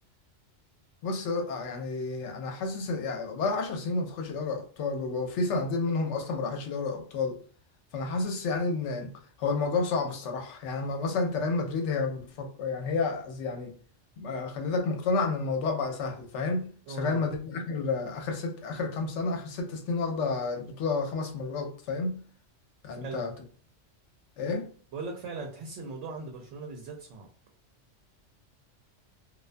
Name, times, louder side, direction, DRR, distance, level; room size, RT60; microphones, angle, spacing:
voice 1, 1.0-7.4 7.9-9.1 9.4-13.7 14.2-22.2 22.8-23.3 24.4-24.7, left 3 dB, 80° left, 0.9 m, -30 dB
voice 2, 16.9-17.2 22.9-23.3 24.9-27.3, right 3 dB, 75° right, 0.9 m, -39 dB
2.4 x 2.2 x 2.5 m
omnidirectional pair, 1.2 m